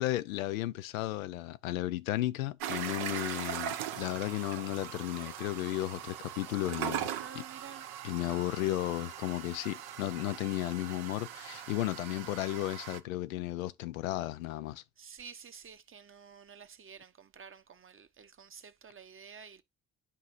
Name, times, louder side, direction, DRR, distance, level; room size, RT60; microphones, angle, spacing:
voice 1, 0.0-7.1 7.3-7.4 8.0-14.8, left 16 dB, 85° left, 0.5 m, -34 dB
sound 1, 2.6-13.0, right 10 dB, 65° right, 0.9 m, -40 dB
voice 2, 7.2-7.9 15.0-19.6, right 6 dB, 30° right, 1.0 m, -51 dB
10.0 x 5.0 x 2.5 m
hypercardioid pair, 50°, 39 cm